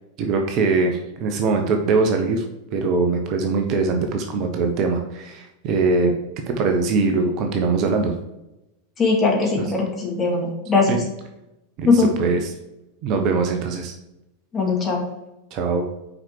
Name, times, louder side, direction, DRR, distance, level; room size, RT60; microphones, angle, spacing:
voice 1, 0.2-2.4 2.7-6.1 6.5-8.1 9.6-9.7 10.9-11.0 11.8-12.5 13.0-13.9 15.5-15.8, right 4 dB, 40° right, 4 dB, 1.0 m, -22 dB
voice 2, 9.0-11.0 11.8-12.1 14.5-15.0, left 3 dB, 20° left, -2 dB, 2.3 m, -20 dB
6.2 x 5.1 x 4.7 m, 0.92 s
figure-of-eight pair, 90°, 0 cm